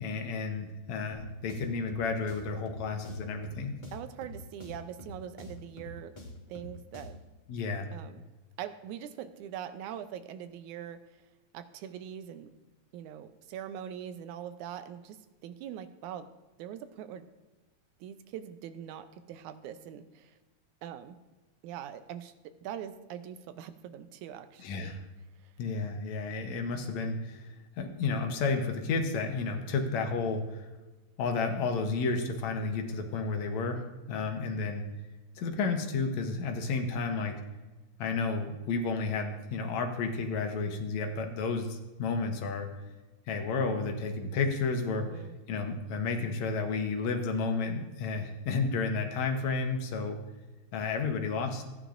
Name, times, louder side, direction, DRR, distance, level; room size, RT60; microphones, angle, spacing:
voice 1, 0.0-3.8 7.5-7.9 24.6-25.0 25.6-30.7 31.2-34.8 35.4-37.3 38.0-42.7 43.3-45.1 45.5-50.2 50.7-51.6, left 4 dB, 75° left, 4 dB, 2.2 m, -32 dB
sound 1, 1.1-7.3, left 1 dB, 35° left, 0.7 m, -47 dB
voice 2, 3.9-6.1 6.5-7.2 7.9-8.2 8.6-11.0 11.5-12.5 12.9-16.3 16.6-17.3 18.0-20.4 20.8-21.2 21.6-25.0 25.4-25.5 26.8-26.9 45.1-45.4, right 9 dB, 90° right, 10 dB, 2.1 m, -42 dB
15.0 x 9.9 x 2.5 m, 1.1 s
omnidirectional pair, 3.3 m